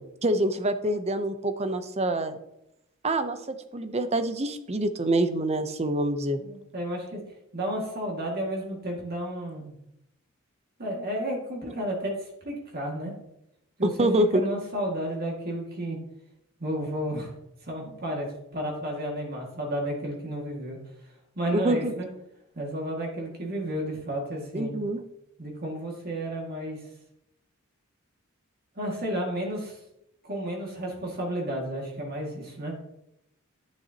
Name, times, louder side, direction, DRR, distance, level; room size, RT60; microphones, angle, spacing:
voice 1, 0.2-2.4 3.0-6.4 13.8-14.4 21.5-21.9 24.5-25.0, right 1 dB, 30° right, 10 dB, 0.7 m, -26 dB
voice 2, 6.4-7.2 7.5-9.7 10.8-13.1 13.8-16.0 16.6-17.3 17.6-20.8 21.4-22.1 22.6-24.7 25.4-26.8 28.8-29.8 30.2-32.7, right 1 dB, 45° right, -1 dB, 2.1 m, -32 dB
10.5 x 9.5 x 2.9 m, 0.83 s
head